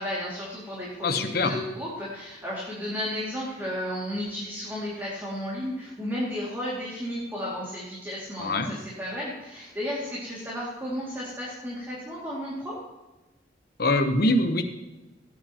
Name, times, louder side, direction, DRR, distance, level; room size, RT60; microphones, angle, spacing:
voice 1, 0.0-12.8, equal, 15° right, -7 dB, 2.5 m, -33 dB
voice 2, 1.0-1.6 8.4-8.7 13.8-14.6, left 2 dB, 55° left, 5 dB, 1.1 m, -23 dB
17.0 x 9.1 x 3.0 m, 1.1 s
head